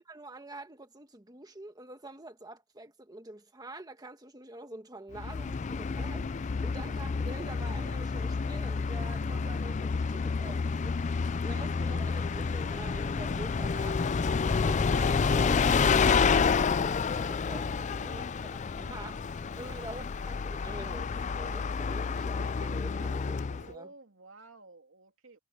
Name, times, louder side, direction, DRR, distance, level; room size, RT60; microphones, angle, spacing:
voice 1, 0.0-18.2 18.8-19.2 19.6-23.9, right 1 dB, 20° right, 1.5 m, -46 dB
Bus, 5.1-23.7, left 5 dB, 35° left, 0.4 m, -29 dB
voice 2, 17.8-18.3 19.6-19.8 23.5-25.4, right 3 dB, 85° right, 3.0 m, -53 dB
head